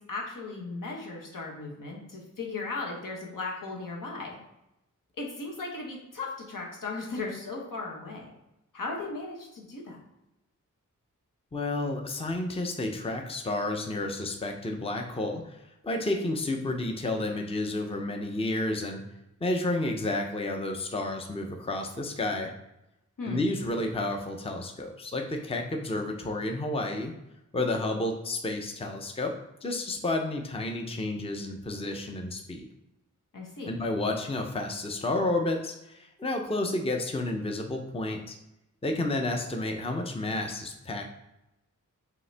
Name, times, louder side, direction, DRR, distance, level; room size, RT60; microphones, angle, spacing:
voice 1, 0.0-4.4 5.2-8.3 8.7-10.0 23.2-23.4 33.3-33.8, left 3 dB, 80° left, -1 dB, 1.1 m, -37 dB
voice 2, 11.5-19.0 19.4-22.5 23.3-27.1 27.5-32.7 33.7-38.4 38.8-41.0, left 2 dB, 20° left, 3 dB, 0.5 m, -31 dB
5.2 x 2.9 x 3.3 m, 0.89 s
wide cardioid pair, 85°, 32 cm